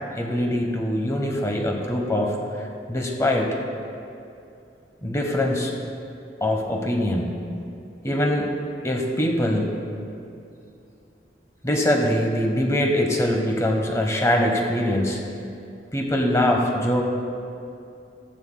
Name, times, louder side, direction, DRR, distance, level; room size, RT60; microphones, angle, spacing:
voice 1, 0.2-3.6 5.0-5.7 6.4-7.4 8.0-8.5 8.8-9.8 11.6-15.2 15.9-17.0, left 1 dB, 15° left, 1 dB, 1.0 m, -23 dB
16.0 x 10.5 x 2.2 m, 2.6 s
head